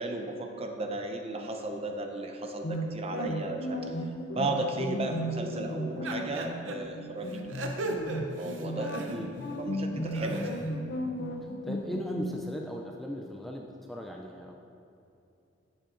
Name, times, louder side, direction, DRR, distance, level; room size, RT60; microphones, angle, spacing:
voice 1, 0.0-3.8 4.3-7.5 8.4-8.9 9.6-10.6, right 2 dB, 30° right, 3 dB, 0.6 m, -34 dB
sound 1, 2.6-12.4, equal, 60° left, 0.6 m, -35 dB
sound 2, 6.0-6.7 7.3-9.5 9.9-10.7, right 2 dB, 75° right, 0.7 m, -37 dB
voice 2, 11.6-14.5, equal, ahead, 0 dB, 0.3 m, -37 dB
11.5 x 7.4 x 2.6 m, 2.7 s
head